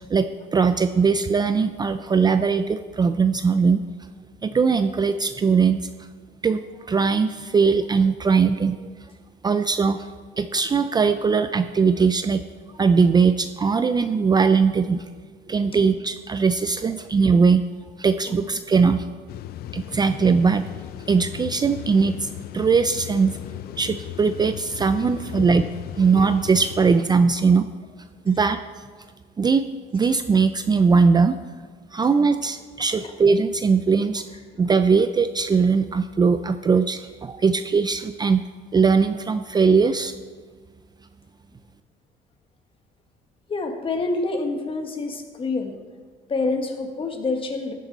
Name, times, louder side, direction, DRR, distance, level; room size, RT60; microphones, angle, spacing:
voice 1, 0.1-3.8 4.4-5.8 6.4-6.6 6.9-8.9 9.4-10.1 10.4-12.4 12.7-15.1 15.5-17.6 18.0-19.1 19.7-20.7 21.1-22.3 22.5-23.4 23.8-25.6 26.0-27.7 28.3-28.6 29.4-29.6 29.9-31.4 31.9-34.2 34.6-38.4 38.7-40.1, right 5 dB, 25° right, 10 dB, 0.4 m, -20 dB
sound 1, 19.3-27.0, left 13 dB, 65° left, 0.4 m, -37 dB
voice 2, 43.5-45.8 46.3-47.7, left 3 dB, 30° left, 5 dB, 1.6 m, -27 dB
15.5 x 9.4 x 4.0 m, 1.5 s
cardioid pair, 110°, 17 cm